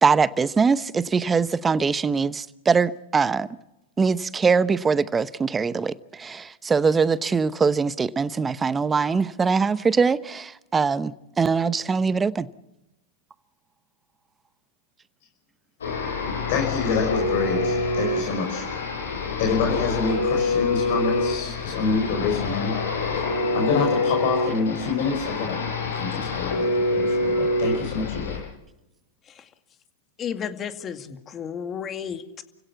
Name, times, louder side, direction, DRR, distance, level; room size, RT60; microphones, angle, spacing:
voice 1, 0.0-3.5 4.0-12.5, right 5 dB, 15° right, 0.9 m, -22 dB
sound 1, 15.8-28.4, left 2 dB, 80° left, 7.6 m, -26 dB
voice 2, 16.5-18.7 19.4-22.7 23.5-25.6 25.9-28.4, left 5 dB, 55° left, 5.3 m, -26 dB
voice 3, 30.2-32.4, left 8 dB, 30° left, 2.3 m, -33 dB
30.0 x 16.5 x 7.1 m
hypercardioid pair, 105°, 0 cm